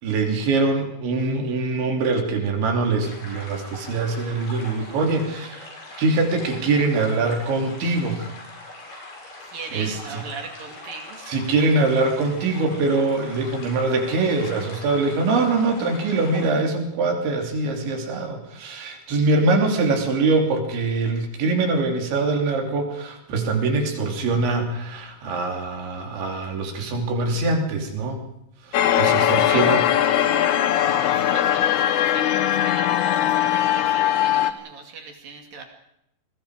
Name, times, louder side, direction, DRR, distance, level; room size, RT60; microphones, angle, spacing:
voice 1, 0.0-5.6 6.0-8.3 9.7-10.3 11.3-28.2 28.7-29.9, right 3 dB, 90° right, 3 dB, 5.5 m, -23 dB
sound 1, 3.0-16.5, left 2 dB, 65° left, 8.5 m, -41 dB
voice 2, 9.4-11.2 28.8-29.7 30.7-35.6, right 5 dB, 55° right, 3 dB, 3.9 m, -39 dB
sound 2, 28.7-34.5, left 11 dB, 80° left, 1.7 m, -20 dB
29.0 x 21.0 x 4.9 m, 0.81 s
omnidirectional pair, 5.1 m